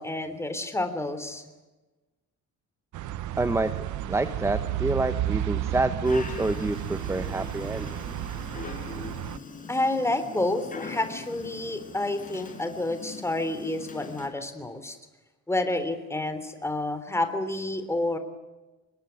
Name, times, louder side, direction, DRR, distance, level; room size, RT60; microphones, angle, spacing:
voice 1, 0.0-1.4 9.7-15.0 15.5-18.2, left 2 dB, 10° left, 9 dB, 3.3 m, -29 dB
sound 1, 2.9-9.4, right 13 dB, 75° right, 1.0 m, -32 dB
voice 2, 3.4-3.7 4.1-8.0, right 2 dB, 10° right, 11 dB, 1.1 m, -27 dB
Dog, 6.0-14.3, left 4 dB, 25° left, 5.3 m, -42 dB
26.5 x 21.5 x 9.4 m, 1.1 s
cardioid pair, 160°, 30 cm